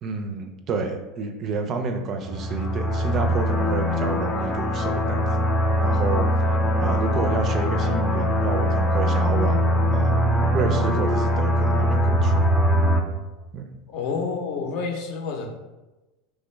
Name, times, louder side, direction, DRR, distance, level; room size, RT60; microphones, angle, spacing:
voice 1, 0.0-5.5 5.7-6.3 6.8-10.2 10.5-12.4 13.5-13.7, right 4 dB, 40° right, 5 dB, 0.4 m, -29 dB
sound 1, 2.2-13.0, equal, 15° left, 0.5 m, -22 dB
voice 2, 13.9-15.5, left 5 dB, 60° left, 2 dB, 0.6 m, -29 dB
3.3 x 2.1 x 3.2 m, 1.1 s
hypercardioid pair, 95°, 0 cm